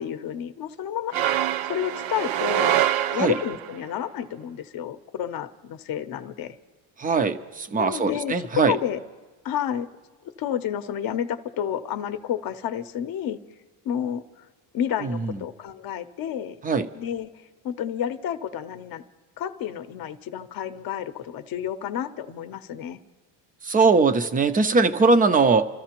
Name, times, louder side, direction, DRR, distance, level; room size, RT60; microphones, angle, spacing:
voice 1, 0.0-2.8 3.1-6.6 7.8-9.0 9.4-9.9 10.4-13.4 13.8-14.2 14.7-16.6 16.9-17.3 17.6-19.0 19.4-23.0, left 10 dB, 45° left, 11 dB, 0.7 m, -30 dB
sound 1, 1.1-3.8, right 12 dB, 65° right, 0.5 m, -25 dB
voice 2, 7.0-8.8 15.0-15.4 16.6-16.9 23.6-25.7, right 4 dB, 20° right, 10 dB, 0.4 m, -21 dB
29.0 x 13.5 x 2.9 m, 1.3 s
cardioid pair, 135°, 50 cm